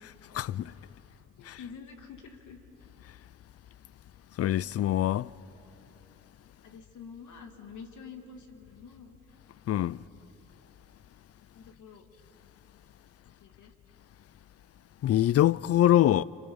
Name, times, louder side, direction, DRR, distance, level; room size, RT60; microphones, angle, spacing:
voice 1, 0.3-0.7 1.5-1.6 4.4-5.3 9.7-10.0 15.0-16.2, left 12 dB, 55° left, 0.5 m, -24 dB
voice 2, 1.1-2.6 6.6-9.2 9.9-10.4 11.5-12.0 13.2-13.7, left 6 dB, 75° left, 2.7 m, -48 dB
27.0 x 26.5 x 7.2 m
cardioid pair, 90°, 30 cm